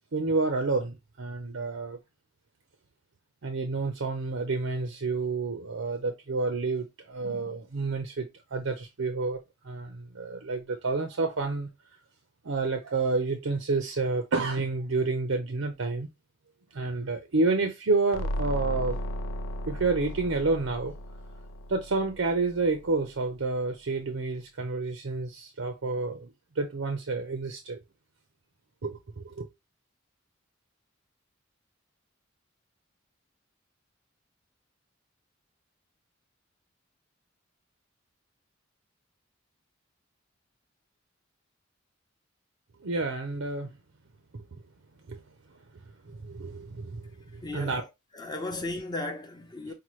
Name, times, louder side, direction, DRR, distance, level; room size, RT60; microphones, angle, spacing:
voice 1, 0.1-2.0 3.4-11.7 12.4-16.1 16.7-19.0 19.7-20.9 21.7-27.8 28.8-29.5 42.8-43.8 44.3-44.4 45.1-45.2 46.0-47.9 48.5-48.6, right 3 dB, 75° right, 0.7 m, -29 dB
sound 1, 18.1-22.8, equal, 85° left, 0.4 m, -35 dB
voice 2, 47.4-47.8 48.1-49.7, left 2 dB, 20° left, 0.8 m, -35 dB
5.8 x 2.2 x 3.1 m
head